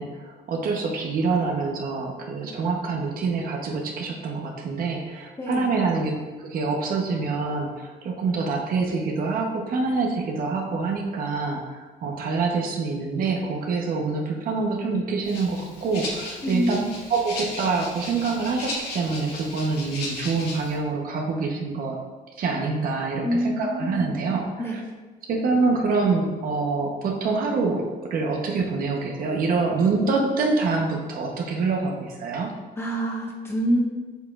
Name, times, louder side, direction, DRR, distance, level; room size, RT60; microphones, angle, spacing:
voice 1, 0.0-16.8 17.1-22.0 22.4-24.8 25.3-32.5, right 4 dB, 60° right, 1 dB, 1.0 m, -26 dB
voice 2, 5.4-5.8 16.4-17.0 23.2-24.1 24.6-24.8 32.8-33.9, equal, 15° left, -2 dB, 1.3 m, -26 dB
Rattle (instrument), 15.2-20.8, left 2 dB, 75° left, 1.9 m, -36 dB
7.9 x 5.0 x 2.5 m, 1.3 s
cardioid pair, 110°, 17 cm